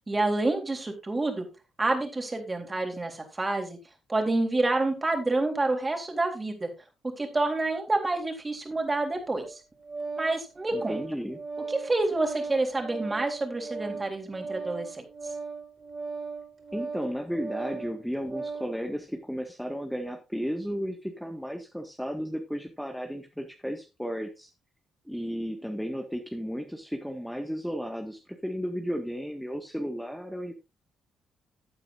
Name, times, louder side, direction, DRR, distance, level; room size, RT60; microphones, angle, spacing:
voice 1, 0.1-1.5 1.8-3.8 4.1-6.7 7.2-9.6 10.2-11.0 11.7-15.0, right 2 dB, 25° right, 4 dB, 3.6 m, -28 dB
Organ, 9.3-18.8, right 4 dB, 40° right, 4.6 m, -38 dB
voice 2, 10.7-11.4 16.7-24.5 25.1-30.5, equal, ahead, 3 dB, 1.7 m, -34 dB
15.0 x 8.8 x 2.6 m, 0.26 s
hypercardioid pair, 45°, 0 cm